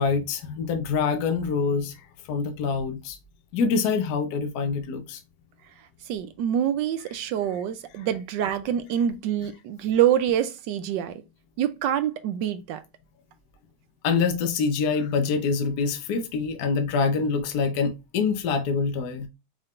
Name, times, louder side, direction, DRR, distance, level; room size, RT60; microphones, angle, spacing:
voice 1, 0.0-2.0 2.3-3.2 3.5-5.2 14.0-19.3, left 5 dB, 60° left, 1.2 m, -25 dB
voice 2, 6.1-11.1 11.6-12.8, right 10 dB, 75° right, 1.1 m, -26 dB
5.4 x 3.4 x 2.4 m
omnidirectional pair, 2.3 m